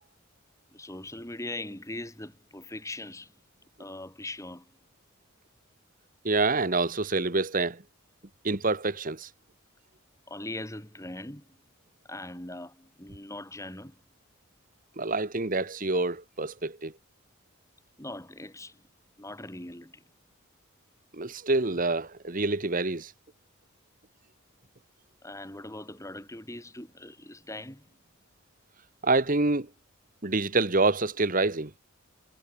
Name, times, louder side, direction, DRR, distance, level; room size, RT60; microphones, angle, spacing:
voice 1, 0.7-3.3 3.8-4.7 10.3-11.5 12.1-14.0 18.0-18.8 19.2-20.0 25.2-27.9, left 2 dB, 15° left, 3.4 m, -41 dB
voice 2, 6.2-7.8 8.4-9.3 15.0-16.9 21.1-23.1 29.0-29.7 30.2-31.7, right 3 dB, 40° right, 1.5 m, -27 dB
head